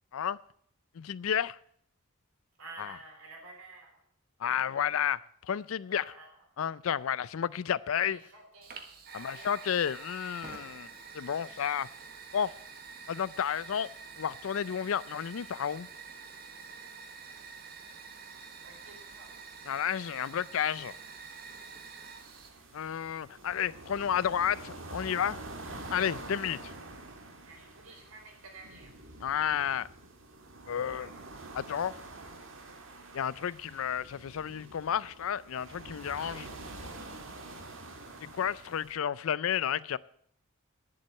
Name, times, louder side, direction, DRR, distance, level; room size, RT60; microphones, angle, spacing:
voice 1, 0.9-1.6 4.4-6.0 6.6-8.2 9.1-10.9 11.1-11.9 12.3-12.5 13.1-13.9 14.2-15.9 19.7-20.9 22.7-25.4 25.9-26.7 29.2-29.9 30.7-31.1 31.5-31.9 33.1-36.5 38.2-40.0, left 8 dB, 70° left, 0.4 m, -31 dB
voice 2, 2.6-4.0 5.9-6.5 7.9-8.7 9.1-9.9 17.0-18.0 18.5-19.3 27.4-28.9 30.8-31.2, right 3 dB, 85° right, 4.2 m, -52 dB
Fire, 8.6-22.5, right 5 dB, 45° right, 1.3 m, -47 dB
sound 1, 22.2-38.9, right 2 dB, 60° right, 1.8 m, -46 dB
10.5 x 7.7 x 8.1 m
head